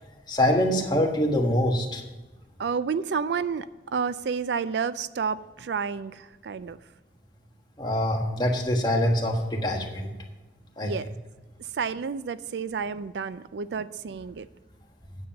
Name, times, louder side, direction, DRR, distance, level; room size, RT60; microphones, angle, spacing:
voice 1, 0.3-2.0 7.8-10.1 10.8-10.9, left 1 dB, 25° left, 1 dB, 1.3 m, -24 dB
voice 2, 2.6-3.7 3.9-6.8 10.8-11.1 11.7-14.5, right 6 dB, 75° right, 15 dB, 0.4 m, -30 dB
9.5 x 7.4 x 5.3 m, 1.2 s
head